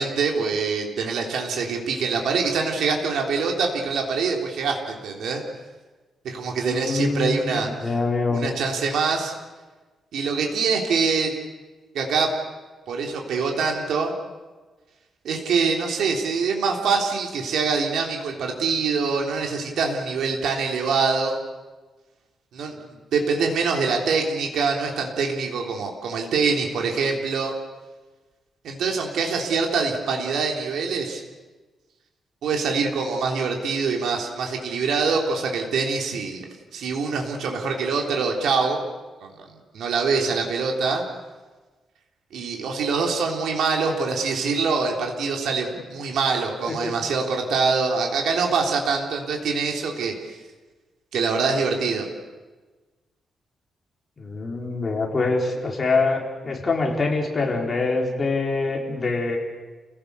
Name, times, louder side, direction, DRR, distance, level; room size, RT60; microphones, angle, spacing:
voice 1, 0.0-5.4 6.2-7.7 8.3-9.3 10.1-11.3 11.9-12.3 12.9-14.1 15.2-21.4 22.5-22.8 23.1-27.5 28.6-31.2 32.4-36.5 36.7-38.8 39.2-39.5 39.7-41.0 42.3-50.1 51.1-52.1, right 4 dB, 80° right, 1 dB, 3.6 m, -24 dB
voice 2, 6.6-7.4 7.8-8.5 45.7-45.8 46.7-47.0 54.2-59.4, left 3 dB, 25° left, 0 dB, 4.4 m, -24 dB
30.0 x 17.5 x 6.9 m, 1.3 s
wide cardioid pair, 140°, 0 cm